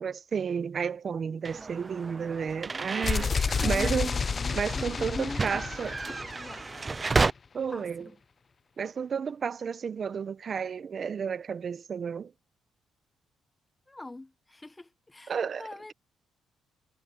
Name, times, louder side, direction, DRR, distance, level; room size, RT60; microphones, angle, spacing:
voice 1, 0.0-4.1 4.5-5.9 7.5-8.1 8.8-12.3 15.3-15.9, right 6 dB, 45° right, 0.8 m, -32 dB
sound 1, 1.4-7.3, right 4 dB, 25° right, 0.5 m, -32 dB
sound 2, 3.0-6.9, left 5 dB, 35° left, 0.8 m, -30 dB
voice 2, 3.6-5.6 6.1-6.6 7.7-8.1 13.9-15.9, left 2 dB, 15° left, 1.0 m, -42 dB
cardioid pair, 90°, 0 cm